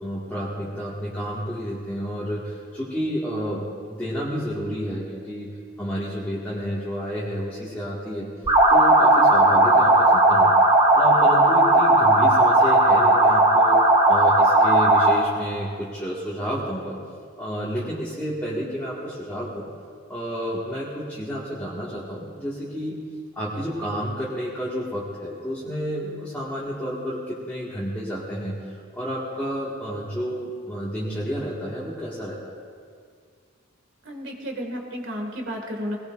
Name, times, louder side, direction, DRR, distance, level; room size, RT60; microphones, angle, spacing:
voice 1, 0.0-5.5 5.8-8.3 8.7-10.6 10.9-13.8 14.1-17.0 17.4-19.7 20.1-23.0 23.4-28.6 28.9-32.5, equal, 10° left, -9 dB, 2.0 m, -30 dB
sound 1, 8.5-15.3, right 2 dB, 25° right, 1.2 m, -16 dB
voice 2, 34.1-36.0, equal, 60° right, 2 dB, 2.2 m, -32 dB
20.5 x 19.0 x 2.6 m, 2.1 s
head